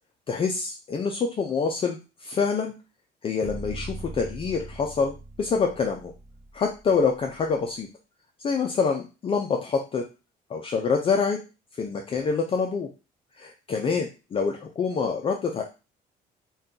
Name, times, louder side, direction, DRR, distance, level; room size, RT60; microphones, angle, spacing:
voice 1, 0.3-2.7 3.2-6.1 6.5-7.9 8.4-10.0 10.5-11.4 11.8-12.9 13.4-15.6, left 5 dB, 35° left, 2 dB, 0.4 m, -26 dB
sound 1, 3.4-7.5, right 1 dB, 10° right, 0.8 m, -40 dB
2.6 x 2.3 x 3.6 m, 0.30 s
cardioid pair, 110°, 17 cm